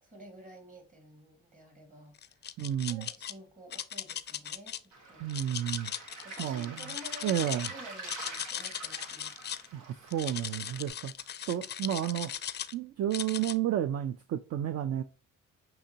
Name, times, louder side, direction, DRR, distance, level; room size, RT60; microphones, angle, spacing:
voice 1, 0.0-5.3 6.2-9.4, right 1 dB, 25° right, 1.9 m, -51 dB
sound 1, 2.2-3.3 3.7-4.8 5.3-7.7 8.0-9.7 10.1-12.7 13.1-13.6, left 9 dB, 35° left, 0.4 m, -38 dB
voice 2, 2.6-3.1 5.2-5.9 6.4-6.8 7.2-7.7 9.7-11.1 11.5-12.3 12.7-15.0, right 11 dB, 55° right, 0.4 m, -31 dB
Waves surf, 4.9-10.9, right 3 dB, 90° right, 1.2 m, -47 dB
6.3 x 2.9 x 2.8 m
cardioid pair, 90°, 30 cm